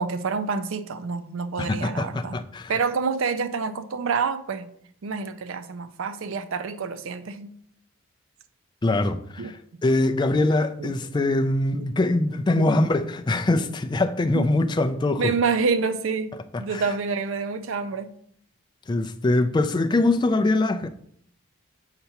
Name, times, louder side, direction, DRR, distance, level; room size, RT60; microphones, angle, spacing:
voice 1, 0.0-2.4 2.7-4.7 5.0-7.5 9.4-9.5 10.8-10.9 11.7-11.9 12.6-12.9 14.3-14.5 15.2-16.3 16.6-18.1, right 5 dB, 65° right, 0.5 m, -27 dB
voice 2, 1.6-2.7 8.8-15.3 16.5-16.8 18.9-20.9, left 2 dB, 20° left, 0.3 m, -23 dB
6.7 x 2.9 x 5.6 m
head